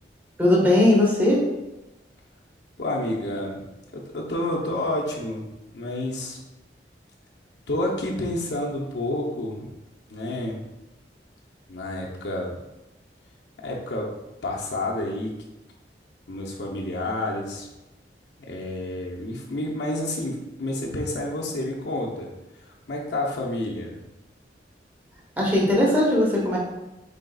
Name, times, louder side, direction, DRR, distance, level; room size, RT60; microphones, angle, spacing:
voice 1, 0.4-1.4 25.4-26.6, left 1 dB, 10° right, -4 dB, 1.0 m, -19 dB
voice 2, 2.8-6.4 7.7-9.7 10.1-10.6 11.7-12.6 13.6-14.1 14.4-15.3 16.3-17.7 18.4-22.3 22.6-23.9, left 1 dB, 75° left, -3 dB, 0.7 m, -29 dB
5.2 x 3.4 x 2.3 m, 0.97 s
head